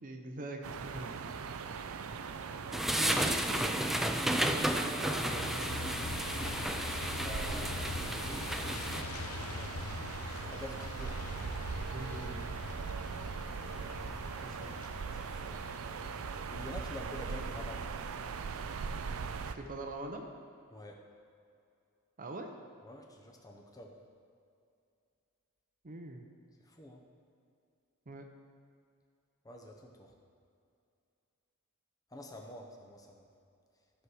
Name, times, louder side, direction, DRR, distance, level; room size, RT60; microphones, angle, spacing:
voice 1, 0.0-1.2 3.0-3.7 4.4-6.1 11.9-12.5 14.4-14.7 19.4-20.3 22.2-22.5 25.8-26.3 28.1-28.2, right 2 dB, 40° right, 4 dB, 0.7 m, -43 dB
sound 1, 0.6-19.6, right 5 dB, 70° right, 0.5 m, -40 dB
sound 2, 2.7-9.0, equal, ahead, 0.3 m, -33 dB
voice 2, 2.8-3.4 7.1-8.0 8.3-10.1 10.4-11.6 12.6-13.4 15.1-15.7 16.5-18.0 20.7-21.0 22.8-24.0 26.6-27.1 29.4-30.2 32.1-33.3, left 1 dB, 15° left, 1 dB, 0.8 m, -49 dB
Truck, 5.2-17.5, left 4 dB, 80° left, 0.8 m, -44 dB
12.5 x 6.2 x 4.8 m, 2.5 s
head